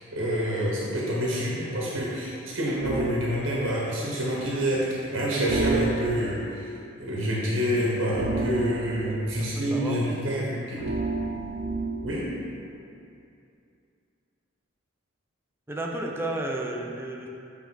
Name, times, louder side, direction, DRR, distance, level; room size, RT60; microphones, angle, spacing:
voice 1, 0.1-6.7 7.0-10.8 12.0-12.3, equal, 75° right, -5 dB, 1.0 m, -27 dB
sound 1, 2.8-3.2 5.5-6.4 8.1-9.2 10.8-12.2, right 3 dB, 60° right, 0.6 m, -30 dB
voice 2, 8.9-10.2 15.7-17.3, right 1 dB, 10° right, -1 dB, 0.5 m, -33 dB
7.5 x 3.4 x 3.9 m, 2.6 s
head